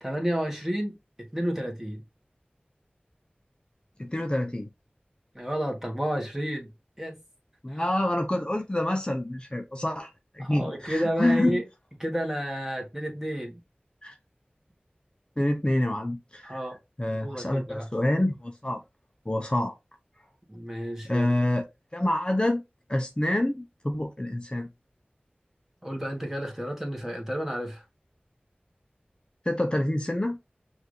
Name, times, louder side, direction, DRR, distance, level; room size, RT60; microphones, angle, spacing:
voice 1, 0.0-2.0 5.3-6.7 7.0-7.2 7.7-7.8 10.4-11.6 12.0-13.6 16.4-16.8 17.2-17.9 20.5-21.3 25.8-27.8, equal, 10° right, 1.5 m, -31 dB
voice 2, 4.0-4.7 7.6-10.1 10.3-11.6 14.0-14.1 15.4-16.6 17.0-18.8 19.3-19.7 21.0-21.6 21.9-22.6 22.9-24.7 29.5-30.4, left 1 dB, 30° left, 0.7 m, -27 dB
5.7 x 2.7 x 3.1 m
wide cardioid pair, 40°, 3 cm